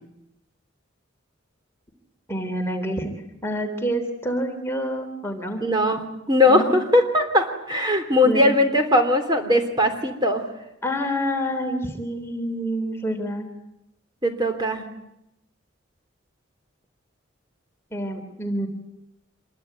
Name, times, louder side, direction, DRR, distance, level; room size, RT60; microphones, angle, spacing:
voice 1, 2.3-3.1 3.4-5.6 6.5-6.8 8.2-8.6 10.8-13.5 17.9-18.7, equal, 10° left, 4 dB, 3.6 m, -27 dB
voice 2, 5.6-6.0 6.3-10.4 14.2-14.8, left 1 dB, 20° right, 6 dB, 3.4 m, -20 dB
26.5 x 23.0 x 9.5 m, 0.85 s
head